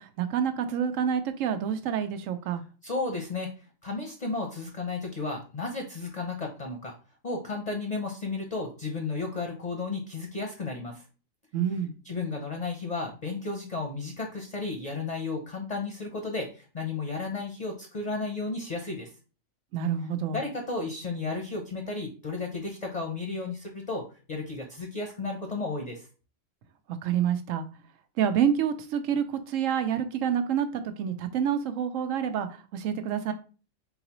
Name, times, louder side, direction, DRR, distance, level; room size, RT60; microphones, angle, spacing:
voice 1, 0.0-2.6 11.5-11.9 19.7-20.4 27.0-27.7 28.2-33.3, right 8 dB, 90° right, 1.0 m, -28 dB
voice 2, 2.8-3.5 3.8-6.9 7.2-11.0 12.0-19.1 20.3-26.1, left 3 dB, 40° left, 0.6 m, -33 dB
3.9 x 3.9 x 2.9 m
omnidirectional pair, 1.3 m